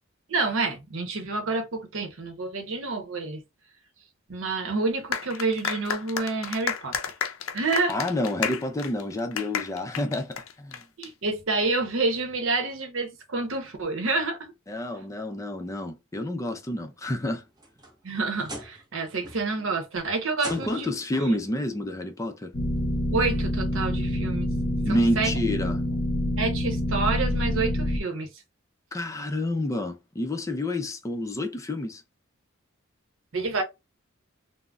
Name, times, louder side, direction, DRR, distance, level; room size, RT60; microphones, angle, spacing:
voice 1, 0.3-3.4 4.3-7.0 7.5-8.0 11.0-14.5 18.0-20.9 21.2-21.4 23.1-24.5 24.9-25.3 26.4-28.3 33.3-33.6, right 3 dB, 70° right, 0.8 m, -28 dB
sound 1, 5.1-11.1, left 7 dB, 85° left, 0.5 m, -32 dB
voice 2, 7.9-10.8 14.7-17.4 20.5-22.5 24.8-25.8 28.9-32.0, left 1 dB, 15° left, 0.4 m, -29 dB
sound 2, 17.3-18.9 19.2-19.7 20.3-21.0 22.2-22.3 22.9-23.0 24.6-24.7, right 1 dB, 20° right, 0.7 m, -41 dB
sound 3, 22.5-28.0, left 1 dB, 40° left, 0.8 m, -27 dB
3.7 x 2.0 x 2.2 m
head